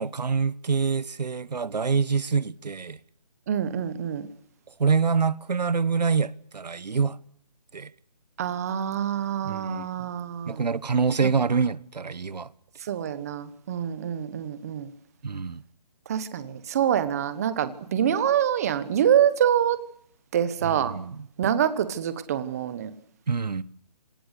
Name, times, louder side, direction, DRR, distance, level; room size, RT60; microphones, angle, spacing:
voice 1, 0.0-3.0 4.8-7.2 7.7-7.9 9.4-10.1 10.5-12.5 15.2-15.6 20.6-21.3 23.3-23.6, right 5 dB, 80° right, 1.2 m, -26 dB
voice 2, 3.5-4.3 8.4-10.6 12.8-14.9 16.1-19.8 20.3-20.9 21.4-22.9, right 9 dB, 20° right, 1.2 m, -25 dB
27.0 x 18.5 x 8.3 m
hypercardioid pair, 170°, 21 cm